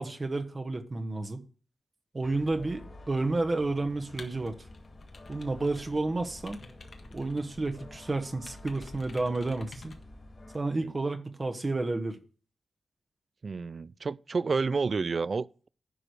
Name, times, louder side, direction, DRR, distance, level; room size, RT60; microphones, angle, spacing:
voice 1, 0.0-1.4 2.1-4.5 5.3-6.6 7.1-9.9 10.5-12.2, right 2 dB, 35° right, 1.2 m, -31 dB
sound 1, 2.2-10.6, left 1 dB, 45° left, 2.8 m, -49 dB
sound 2, 4.2-6.0 6.3-8.0 8.5-10.0, left 3 dB, 60° left, 1.5 m, -51 dB
voice 2, 13.4-15.7, right 4 dB, 55° right, 0.3 m, -30 dB
9.9 x 5.0 x 6.3 m
cardioid pair, 65°, 0 cm